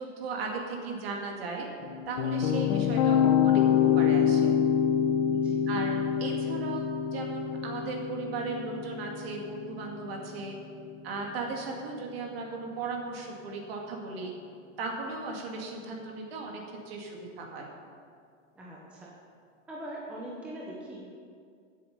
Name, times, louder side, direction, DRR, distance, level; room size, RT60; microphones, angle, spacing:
voice 1, 0.0-1.7 2.1-4.5 5.7-10.6 11.0-14.3 14.8-17.7, right 3 dB, 45° right, 1 dB, 2.4 m, -37 dB
sound 1, 1.8-10.9, left 8 dB, 25° left, 0.9 m, -26 dB
voice 2, 18.5-19.1 19.7-21.1, right 1 dB, 5° right, -5 dB, 0.7 m, -41 dB
15.0 x 7.9 x 5.4 m, 2.2 s
hypercardioid pair, 160°, 40 cm